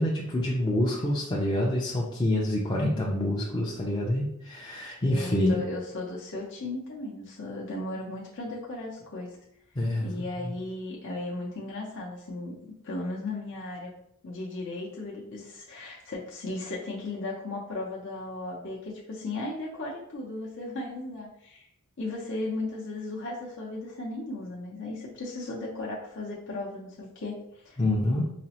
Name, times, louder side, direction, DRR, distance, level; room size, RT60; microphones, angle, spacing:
voice 1, 0.0-5.6 9.8-10.1 10.4-10.5 27.8-28.3, left 1 dB, 20° left, -4 dB, 0.4 m, -27 dB
voice 2, 2.8-3.1 5.1-9.4 10.0-12.5 12.8-13.9 14.2-21.7 22.0-27.8, left 2 dB, 60° left, -4 dB, 0.6 m, -36 dB
4.9 x 2.0 x 2.8 m, 0.75 s
head